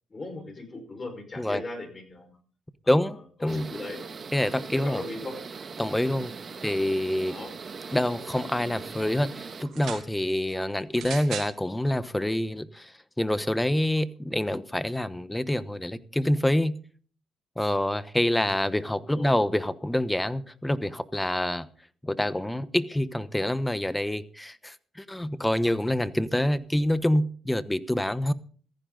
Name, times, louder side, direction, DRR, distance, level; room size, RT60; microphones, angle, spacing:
voice 1, 0.1-2.4 2.8-4.0 4.7-5.3 6.6-6.7 7.3-7.5 18.3-18.5 19.0-19.3, left 2 dB, 30° left, 7 dB, 5.1 m, -39 dB
voice 2, 2.9-3.7 4.3-5.0 5.8-6.3 6.6-7.3 7.9-12.9 13.2-16.8 17.6-21.7 22.0-28.3, left 1 dB, 10° left, 14 dB, 1.1 m, -26 dB
sound 1, 3.5-9.6, right 5 dB, 40° right, 1.9 m, -40 dB
sound 2, 9.6-10.1 11.0-11.6 12.4-12.5, right 9 dB, 80° right, 2.6 m, -37 dB
15.5 x 15.0 x 3.9 m, 0.43 s
cardioid pair, 90°, 0 cm